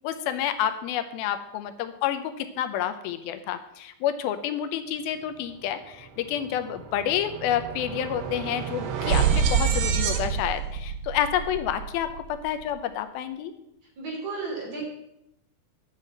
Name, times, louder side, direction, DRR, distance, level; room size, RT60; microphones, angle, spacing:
voice 1, 0.0-13.5, left 10 dB, 80° left, 9 dB, 2.6 m, -29 dB
sound 1, 5.9-6.1 6.4-12.6, right 7 dB, 85° right, 1.4 m, -28 dB
voice 2, 14.0-14.9, right 3 dB, 45° right, -1 dB, 4.0 m, -33 dB
10.5 x 6.6 x 7.6 m, 0.83 s
omnidirectional pair, 4.3 m